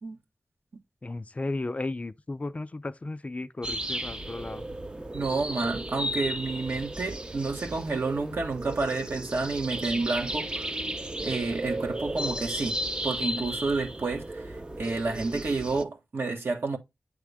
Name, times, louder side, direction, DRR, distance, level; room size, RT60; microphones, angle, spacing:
voice 1, 1.0-4.6, left 2 dB, 35° left, 0.4 m, -34 dB
sound 1, 3.6-15.8, right 1 dB, 20° right, 0.6 m, -34 dB
voice 2, 5.1-10.7 11.2-12.8 13.0-16.8, right 3 dB, 65° right, 1.5 m, -30 dB
8.3 x 3.5 x 3.4 m
wide cardioid pair, 85°, 4 cm